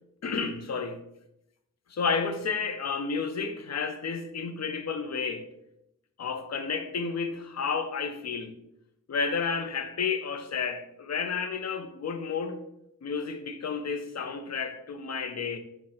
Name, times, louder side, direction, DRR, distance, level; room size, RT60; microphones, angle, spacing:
voice 1, 0.2-1.0 1.9-5.5 6.2-8.5 9.1-12.6 13.0-15.6, left 5 dB, 55° left, 0.4 m, -31 dB
3.9 x 2.0 x 4.1 m
wide cardioid pair, 85°, 31 cm